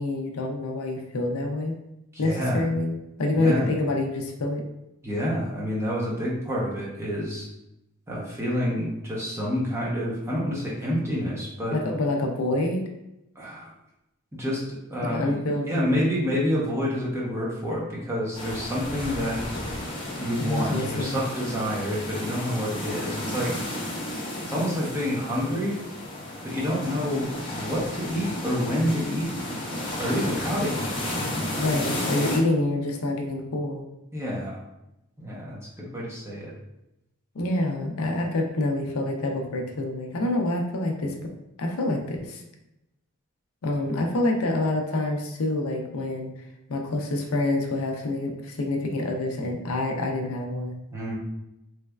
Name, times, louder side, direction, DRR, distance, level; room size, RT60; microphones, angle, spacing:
voice 1, 0.0-1.8 2.2-4.6 11.7-12.8 15.0-16.0 20.4-21.2 31.6-33.8 37.3-41.2 41.6-42.4 43.6-46.3 46.7-50.8, left 2 dB, 75° left, 2 dB, 0.5 m, -27 dB
voice 2, 2.1-2.6 3.3-3.7 5.0-7.5 8.1-11.8 13.4-13.7 14.3-19.4 20.2-23.7 24.4-25.8 26.4-29.3 30.0-30.9 34.1-34.6 35.2-36.5 50.9-51.2, equal, 10° right, -5 dB, 0.7 m, -28 dB
sound 1, 18.3-32.4, left 1 dB, 25° left, 0.7 m, -33 dB
3.4 x 3.1 x 2.3 m, 0.88 s
head